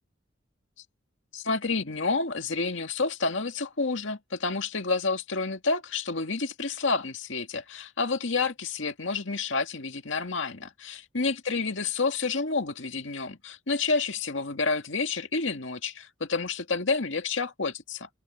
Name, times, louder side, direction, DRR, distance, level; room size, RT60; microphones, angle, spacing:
voice 1, 1.3-18.1, left 4 dB, 75° left, 2.0 m, -29 dB
head